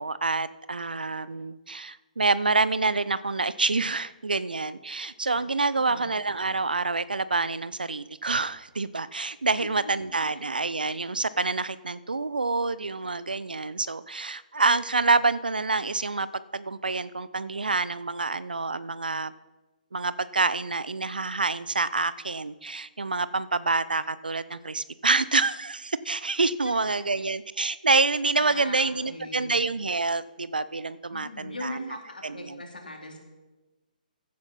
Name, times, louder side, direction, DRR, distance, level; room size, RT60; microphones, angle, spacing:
voice 1, 0.0-16.3 16.5-19.3 19.9-32.6, right 3 dB, 80° right, 17 dB, 0.6 m, -27 dB
voice 2, 5.7-6.1 9.6-10.1 26.6-27.0 28.3-29.5 31.1-33.2, left 2 dB, 80° left, 1 dB, 3.1 m, -40 dB
15.5 x 9.6 x 4.2 m, 1.2 s
figure-of-eight pair, 130°, 5 cm